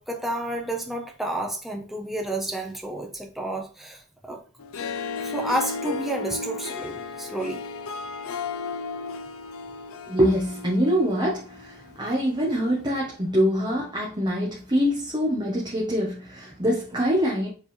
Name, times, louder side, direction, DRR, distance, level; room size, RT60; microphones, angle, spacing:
voice 1, 0.0-4.4 5.2-7.7, right 1 dB, ahead, 1.1 m, -30 dB
Harp, 4.6-12.0, left 4 dB, 65° left, 0.6 m, -34 dB
voice 2, 10.1-17.5, equal, 20° right, 1.3 m, -24 dB
7.1 x 3.8 x 4.3 m
head